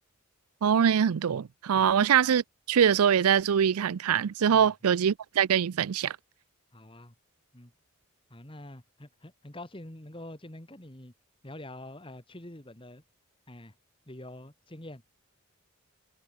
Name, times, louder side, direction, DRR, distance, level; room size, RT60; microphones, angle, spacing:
voice 1, 0.6-2.4 2.7-6.2, right 8 dB, 85° right, 0.4 m, -23 dB
voice 2, 6.7-7.1 7.5-7.7 8.3-11.1 11.4-13.0 13.5-13.7 14.1-15.0, left 1 dB, 25° left, 2.2 m, -45 dB
head